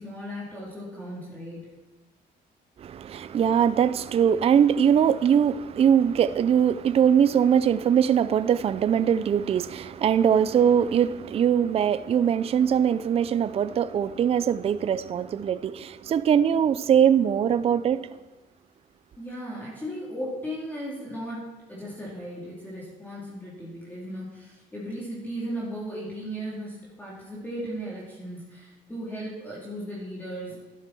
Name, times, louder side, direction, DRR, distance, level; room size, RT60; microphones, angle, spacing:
voice 1, 0.0-1.7 19.2-30.7, equal, 10° left, 3.8 m, -36 dB
voice 2, 2.8-18.1, right 8 dB, 35° right, 0.5 m, -22 dB
12.0 x 11.5 x 4.6 m
cardioid pair, 110°, 17 cm